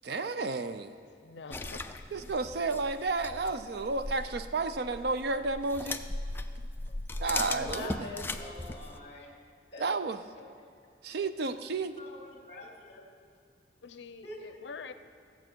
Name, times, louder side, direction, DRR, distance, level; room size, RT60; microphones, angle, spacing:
voice 1, 0.0-0.9 2.1-6.0 7.2-7.9 9.8-10.2 11.0-12.0, right 3 dB, 60° right, 11 dB, 0.5 m, -32 dB
voice 2, 1.2-2.2 2.7-2.8 13.8-14.9, left 4 dB, 75° left, 11 dB, 0.6 m, -46 dB
sound 1, 1.5-9.0, left 2 dB, 10° left, 0.4 m, -38 dB
voice 3, 7.4-9.3 9.7-10.4 11.1-13.1 14.2-14.6, left 1 dB, 35° left, -1 dB, 2.0 m, -45 dB
16.5 x 7.3 x 4.5 m, 2.3 s
head